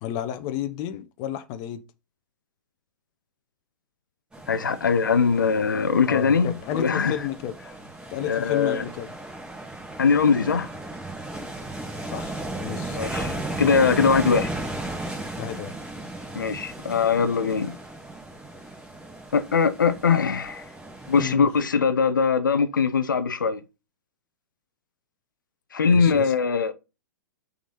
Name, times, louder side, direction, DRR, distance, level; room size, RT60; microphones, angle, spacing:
voice 1, 0.0-1.8 6.0-7.5 8.1-9.1 12.0-13.0 15.4-15.7 21.2-21.5 25.9-26.3, left 11 dB, 40° left, 0.8 m, -31 dB
sound 1, 4.3-21.3, right 2 dB, 10° right, 2.4 m, -35 dB
voice 2, 4.5-7.1 8.2-8.8 10.0-10.7 12.9-13.3 13.6-14.5 16.4-17.7 19.3-20.6 21.1-23.6 25.7-26.7, left 5 dB, 80° left, 0.6 m, -21 dB
6.0 x 4.0 x 4.2 m
figure-of-eight pair, 110°, 10 cm